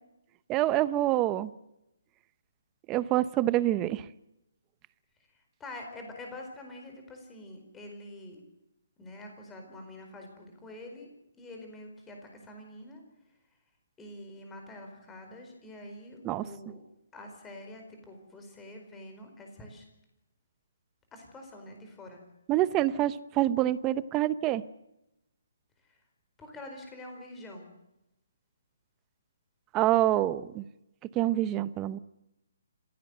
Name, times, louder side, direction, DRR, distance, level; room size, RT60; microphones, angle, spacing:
voice 1, 0.5-1.5 2.9-4.1 16.2-16.4 22.5-24.6 29.7-30.6 31.1-32.0, right 14 dB, 15° right, 16 dB, 0.7 m, -26 dB
voice 2, 5.6-8.4 9.0-11.1 11.4-13.0 14.0-16.8 17.1-19.9 21.1-22.2 25.9-26.0 26.4-27.7, left 1 dB, 10° left, 3 dB, 4.6 m, -46 dB
26.5 x 16.5 x 8.0 m, 0.88 s
hypercardioid pair, 170°, 0 cm